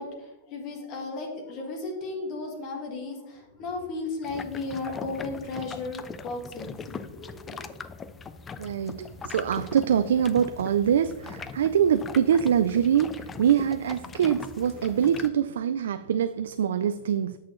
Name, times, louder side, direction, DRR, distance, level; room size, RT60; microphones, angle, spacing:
voice 1, 0.0-7.7, left 3 dB, 35° left, 1.5 m, -35 dB
sound 1, 4.2-15.3, left 5 dB, 15° left, 0.3 m, -41 dB
voice 2, 8.6-17.4, right 8 dB, 90° right, 0.3 m, -24 dB
8.3 x 6.4 x 3.1 m
supercardioid pair, 155°, 0 cm